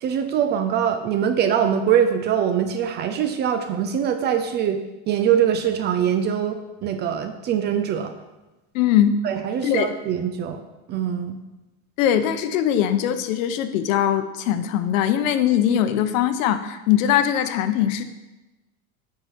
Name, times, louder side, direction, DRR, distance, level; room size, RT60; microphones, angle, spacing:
voice 1, 0.0-4.8 5.1-8.2 9.2-10.6 10.9-11.4, right 8 dB, 25° right, 8 dB, 0.4 m, -23 dB
voice 2, 8.7-9.2 9.6-9.9 12.0-18.0, left 10 dB, 70° left, 10 dB, 0.9 m, -21 dB
7.9 x 4.9 x 5.7 m, 1.1 s
supercardioid pair, 140°, 41 cm